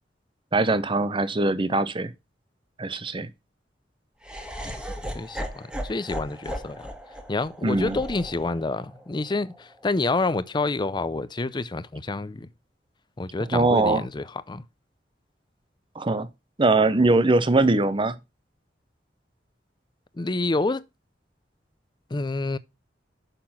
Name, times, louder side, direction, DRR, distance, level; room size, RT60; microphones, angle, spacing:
voice 1, 0.5-2.1 2.8-3.3 7.6-8.0 13.5-14.0 16.0-16.3 16.6-18.2, right 2 dB, 30° right, 0.7 m, -21 dB
Laughter, 4.2-10.4, equal, 5° right, 1.4 m, -37 dB
voice 2, 5.1-6.9 7.3-12.5 13.2-14.6 20.1-20.9 22.1-22.6, left 3 dB, 25° left, 0.5 m, -28 dB
6.8 x 6.0 x 5.6 m
head